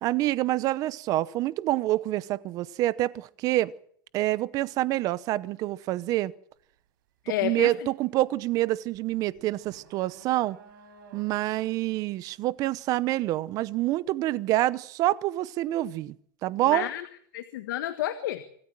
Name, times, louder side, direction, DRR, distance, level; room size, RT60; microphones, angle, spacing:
voice 1, 0.0-3.7 4.1-6.3 7.4-10.6 11.1-16.1 16.4-16.9, right 16 dB, 30° right, 0.8 m, -27 dB
sound 1, 6.5-6.8 7.1-14.2, right 6 dB, 70° right, 5.1 m, -55 dB
voice 2, 7.2-7.7 16.7-17.1 17.3-18.4, left 14 dB, 65° left, 1.6 m, -30 dB
26.0 x 13.5 x 7.5 m
supercardioid pair, 160°, 11 cm